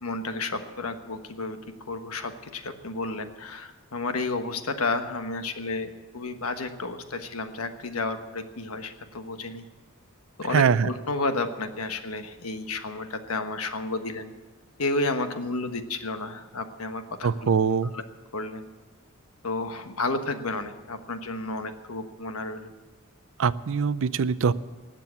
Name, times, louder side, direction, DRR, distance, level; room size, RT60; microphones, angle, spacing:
voice 1, 0.0-1.6 1.9-9.6 10.4-14.3 14.8-17.5 17.9-18.0 18.3-18.7 19.4-22.7, left 3 dB, 80° left, 8 dB, 1.3 m, -31 dB
voice 2, 10.5-10.9 17.2-17.9 23.4-24.5, right 6 dB, 65° right, 17 dB, 0.5 m, -23 dB
19.5 x 7.5 x 8.2 m, 1.2 s
head